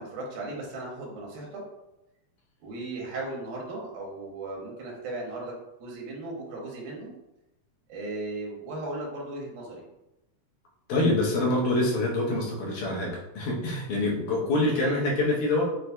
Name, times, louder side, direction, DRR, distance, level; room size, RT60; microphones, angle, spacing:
voice 1, 0.0-1.6 2.6-5.5 5.8-7.1 7.9-9.8 14.6-15.0, right 2 dB, 80° right, -2 dB, 2.3 m, -36 dB
voice 2, 10.9-15.6, left 2 dB, 80° left, -3 dB, 2.4 m, -25 dB
6.1 x 2.6 x 2.2 m, 0.92 s
omnidirectional pair, 3.5 m